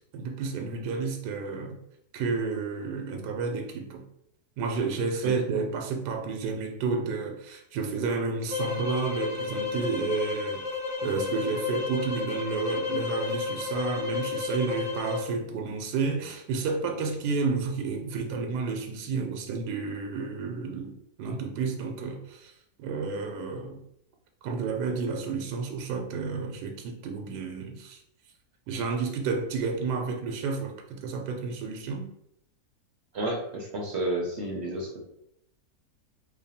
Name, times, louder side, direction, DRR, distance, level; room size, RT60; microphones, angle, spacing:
voice 1, 0.1-1.8 2.1-4.0 4.6-10.6 11.0-22.5 22.8-23.8 24.4-28.0 28.7-32.1, right 4 dB, 85° right, 3 dB, 1.2 m, -31 dB
sound 1, 8.5-15.3, left 4 dB, 60° left, 1.0 m, -32 dB
voice 2, 33.1-35.0, right 1 dB, 60° right, 0 dB, 0.7 m, -31 dB
3.2 x 2.2 x 4.1 m, 0.76 s
omnidirectional pair, 1.7 m